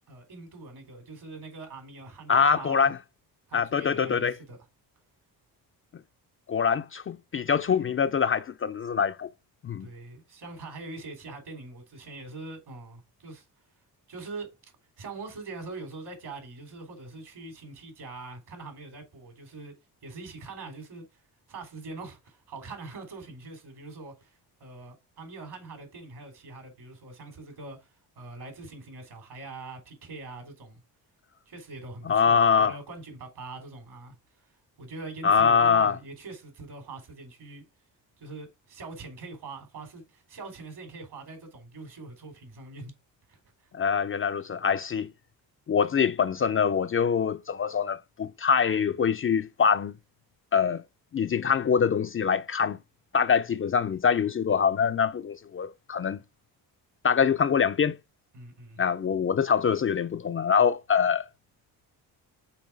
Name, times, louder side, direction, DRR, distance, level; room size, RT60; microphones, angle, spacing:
voice 1, 0.1-2.9 3.5-4.6 9.7-13.4 14.1-14.5 15.0-19.7 20.0-21.1 21.5-30.8 31.5-34.5 34.8-37.6 38.2-42.9 43.3-43.7 58.3-58.8, right 3 dB, 70° right, 3.5 m, -43 dB
voice 2, 2.3-3.0 3.5-4.4 6.5-9.3 9.6-9.9 32.0-32.7 35.2-36.0 43.7-45.1 45.7-49.9 50.5-50.8 51.1-52.8 53.1-56.2 57.0-58.0 58.8-61.2, left 6 dB, 30° left, 0.4 m, -24 dB
5.7 x 4.5 x 4.6 m
cardioid pair, 75°, 41 cm